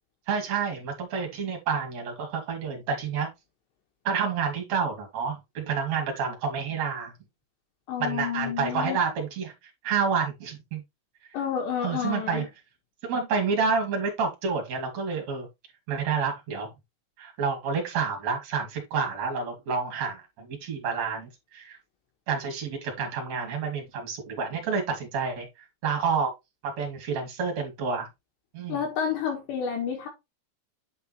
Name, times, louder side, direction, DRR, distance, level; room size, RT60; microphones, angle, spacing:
voice 1, 0.3-3.3 4.0-7.1 8.0-10.8 11.8-12.4 13.0-15.5 15.9-16.7 17.2-21.8 22.3-26.3 26.6-28.1 28.5-28.8, right 5 dB, 45° right, 3.0 m, -29 dB
voice 2, 7.9-9.0 11.3-12.5 28.7-30.1, left 8 dB, 70° left, 3.6 m, -30 dB
9.3 x 5.4 x 3.0 m
omnidirectional pair, 5.4 m